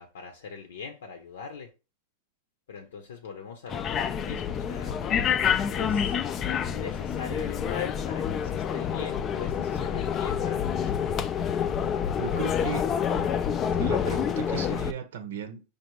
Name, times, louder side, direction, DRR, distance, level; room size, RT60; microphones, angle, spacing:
voice 1, 0.0-1.7 2.7-5.0 5.7-6.2 6.7-11.3, left 6 dB, 85° left, 0.7 m, -41 dB
sound 1, 3.7-14.9, left 8 dB, 30° left, 0.3 m, -28 dB
voice 2, 12.2-12.8 13.8-15.6, right 8 dB, 80° right, 0.8 m, -35 dB
4.9 x 2.6 x 3.0 m
supercardioid pair, 130°, 0 cm